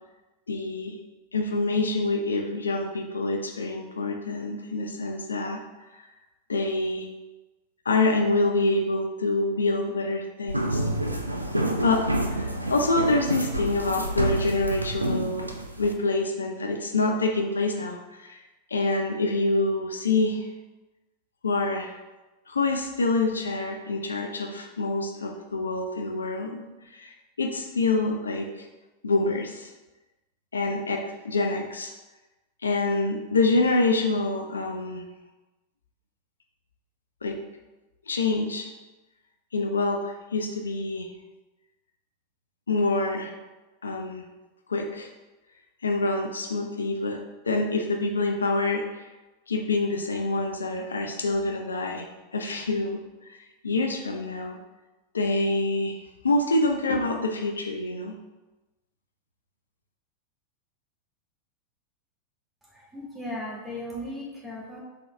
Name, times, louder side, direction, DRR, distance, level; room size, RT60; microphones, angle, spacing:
voice 1, 0.5-1.0 1.3-5.6 5.9-6.1 6.5-7.1 7.9-10.9 11.8-15.5 15.8-18.4 18.7-20.5 21.4-22.0 22.5-28.7 29.0-29.7 30.5-31.9 32.6-35.1 37.2-37.4 38.1-38.7 39.5-41.1 42.7-43.4 43.8-44.3 44.7-45.1 45.8-47.2 47.5-49.0 49.5-53.0 53.6-54.6 55.1-56.0 56.2-58.1, left 2 dB, 75° left, 3 dB, 0.4 m, -26 dB
sound 1, 10.5-15.9, right 1 dB, 85° right, 0.4 m, -28 dB
voice 2, 62.7-64.8, left 1 dB, 5° right, -5 dB, 1.3 m, -36 dB
4.2 x 3.8 x 3.2 m, 1.1 s
figure-of-eight pair, 90°, 0 cm